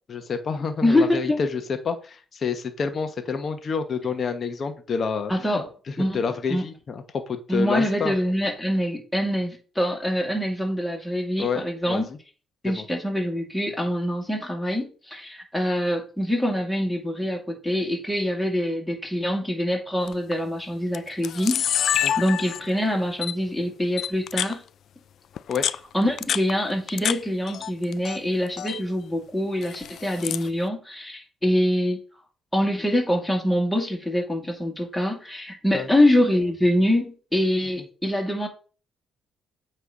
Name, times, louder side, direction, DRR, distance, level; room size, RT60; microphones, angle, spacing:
voice 1, 0.1-8.1 11.4-12.0 12.6-12.8 22.0-22.1 25.5-25.6 35.7-35.9, left 5 dB, 50° left, 7 dB, 1.1 m, -28 dB
voice 2, 0.8-1.4 5.3-5.7 6.0-6.2 6.5-6.7 7.5-12.0 12.6-21.6 21.9-24.6 25.9-32.0 32.5-38.5, left 1 dB, 5° left, 2 dB, 2.4 m, -24 dB
Camera, 20.1-20.3 20.9-21.0 21.2-22.8 23.2-23.3 24.0-24.5 25.4-27.2 27.5-28.2 28.5-28.8 29.6-30.5, left 10 dB, 65° left, 0.3 m, -27 dB
8.3 x 3.3 x 5.0 m, 0.37 s
cardioid pair, 90°, 0 cm